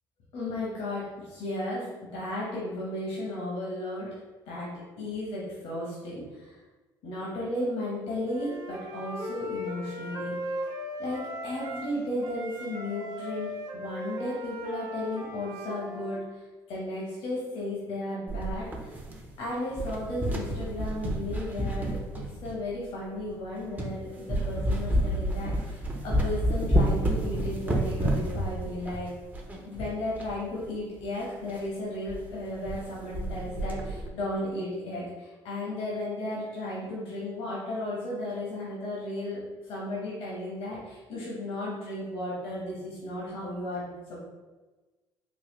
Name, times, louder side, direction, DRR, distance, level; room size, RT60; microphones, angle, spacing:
voice 1, 0.3-4.1 4.5-6.6 7.0-10.3 11.0-16.4 16.7-19.0 19.4-29.1 29.6-44.2, left 1 dB, 75° left, -5 dB, 1.0 m, -34 dB
Wind instrument woodwind instrument, 8.2-11.9 12.2-16.2, equal, 50° right, 0.8 m, -38 dB
sound 1, 18.3-19.4 19.7-22.7 23.3-23.4 23.8-24.0 24.3-30.4 30.6-30.7 31.0-31.1 31.5-31.7 32.1-32.2 32.5-32.8 33.1-34.1, equal, 20° right, 0.6 m, -29 dB
4.0 x 2.2 x 3.1 m, 1.2 s
supercardioid pair, 90°, 9 cm